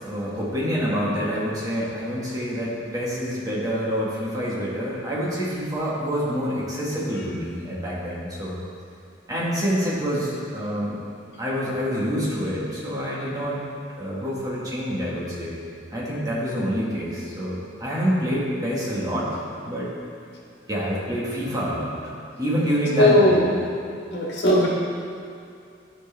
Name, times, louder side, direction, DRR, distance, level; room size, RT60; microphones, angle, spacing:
voice 1, 0.0-8.6 9.3-11.0 11.4-13.6 14.0-15.6 15.9-19.3 19.6-19.9 20.7-21.9 22.4-23.5, equal, 20° right, -7 dB, 1.6 m, -27 dB
voice 2, 23.0-23.4 24.1-24.7, left 1 dB, 60° left, -4 dB, 1.6 m, -17 dB
13.5 x 4.6 x 3.4 m, 2.5 s
head